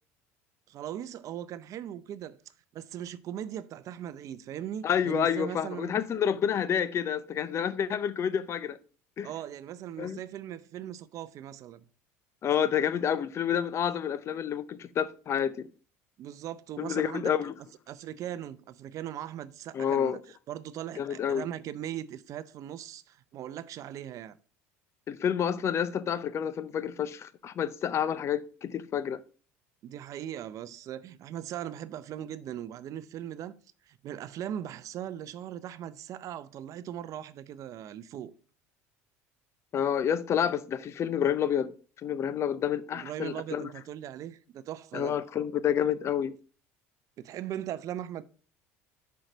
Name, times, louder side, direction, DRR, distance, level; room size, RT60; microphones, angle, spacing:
voice 1, 0.7-2.4 2.7-5.9 9.2-11.9 16.2-17.3 17.9-24.4 29.8-33.5 33.8-38.3 42.9-45.2 47.2-48.2, right 11 dB, 50° right, 0.5 m, -39 dB
voice 2, 4.8-8.8 9.2-9.3 10.0-10.2 12.4-15.7 16.8-17.5 19.7-20.2 21.0-21.5 25.1-29.2 39.7-41.7 42.0-43.7 44.9-46.3, left 8 dB, 40° left, 0.6 m, -29 dB
6.5 x 4.7 x 5.0 m
supercardioid pair, 85°, 7 cm